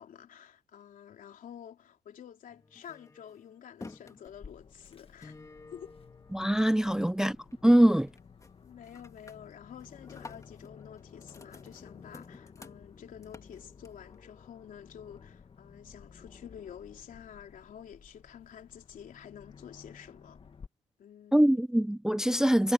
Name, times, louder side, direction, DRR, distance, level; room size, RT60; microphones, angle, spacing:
voice 1, 0.0-5.3 5.7-5.9 6.8-7.0 8.6-20.4 21.0-21.6, left 9 dB, 75° left, 3.4 m, -49 dB
sound 1, 2.5-7.0 7.3-7.8 8.1-8.5 8.8-14.1, left 3 dB, 25° left, 2.4 m, -52 dB
Aircraft, 4.3-20.7, left 5 dB, 40° left, 1.7 m, -54 dB
voice 2, 6.3-7.4 7.6-8.1 21.3-22.7, right 1 dB, 5° right, 0.3 m, -23 dB
cardioid pair, 110°, 14 cm